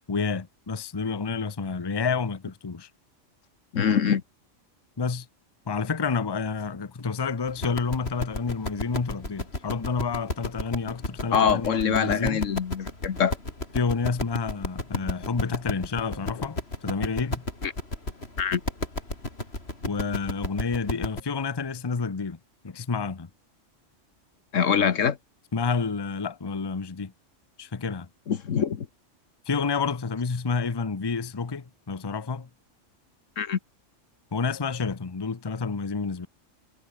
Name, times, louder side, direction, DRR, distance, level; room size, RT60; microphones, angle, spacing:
voice 1, 0.1-2.9 5.0-5.3 5.7-12.4 13.7-17.5 19.8-22.4 22.6-23.3 25.5-27.1 27.6-28.1 29.5-32.5 34.3-36.3, left 4 dB, 25° left, 0.8 m, -29 dB
voice 2, 3.7-4.2 11.3-13.4 17.6-17.7 18.4-18.6 24.5-25.2 28.3-28.9 33.4-33.6, left 7 dB, 80° left, 1.6 m, -24 dB
sound 1, 7.5-21.2, left 2 dB, 55° left, 4.8 m, -33 dB
omnidirectional pair, 1.3 m